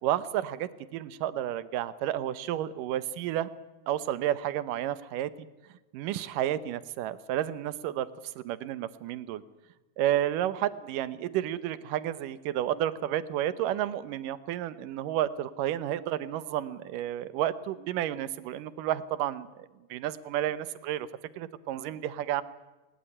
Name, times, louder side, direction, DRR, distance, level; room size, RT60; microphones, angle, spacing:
voice 1, 0.0-3.5 3.9-5.3 5.9-8.1 8.4-9.4 10.0-21.1 21.4-22.4, right 12 dB, 75° right, 16 dB, 2.4 m, -31 dB
20.0 x 19.5 x 9.8 m, 1.1 s
omnidirectional pair, 3.9 m